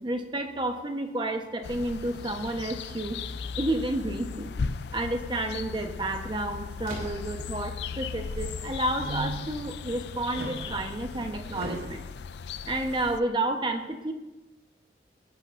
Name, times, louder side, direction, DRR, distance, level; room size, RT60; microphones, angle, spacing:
voice 1, 0.0-3.3 3.6-4.5 4.9-12.0 12.7-14.1, right 1 dB, 25° right, 5 dB, 1.0 m, -31 dB
sound 1, 1.6-13.2, left 5 dB, 70° left, 0.4 m, -37 dB
sound 2, 6.8-7.5 10.5-11.3, right 1 dB, 50° right, 3.1 m, -43 dB
sound 3, 7.0-7.6 8.1-9.7 10.3-12.0, right 2 dB, 65° right, 0.8 m, -39 dB
19.0 x 11.0 x 2.6 m, 1.1 s
head